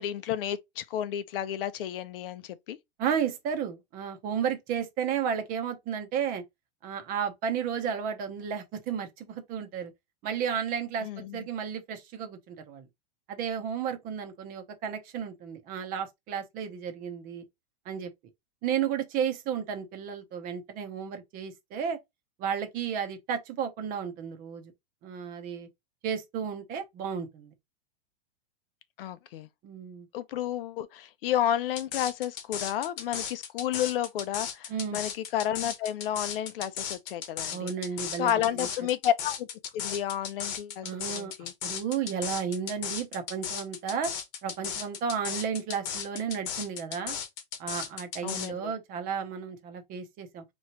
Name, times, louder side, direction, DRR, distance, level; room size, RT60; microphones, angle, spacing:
voice 1, 0.0-2.8 11.0-11.4 29.0-29.5 30.1-37.7 38.2-39.5 39.7-41.5 48.2-48.7, left 11 dB, 65° left, 0.6 m, -31 dB
voice 2, 3.0-6.4 6.8-9.9 10.2-12.8 13.3-17.4 17.9-18.1 18.6-22.0 22.4-24.7 25.0-25.7 26.0-27.5 29.6-30.1 34.7-35.0 37.5-38.7 40.8-41.3 41.6-44.1 44.4-47.2 47.6-50.4, right 7 dB, 30° right, 0.8 m, -33 dB
sound 1, 31.8-48.5, left 8 dB, 45° left, 1.0 m, -36 dB
4.5 x 3.0 x 2.9 m
supercardioid pair, 150°, 30 cm